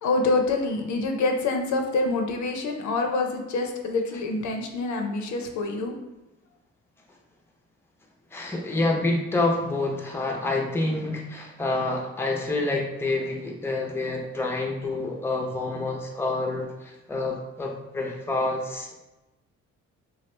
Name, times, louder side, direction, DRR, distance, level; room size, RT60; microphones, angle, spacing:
voice 1, 0.0-6.0, left 3 dB, 70° left, 4 dB, 0.6 m, -26 dB
voice 2, 8.3-18.9, left 2 dB, 10° left, 0 dB, 0.5 m, -28 dB
3.0 x 2.4 x 3.1 m, 1.0 s
cardioid pair, 90°, 30 cm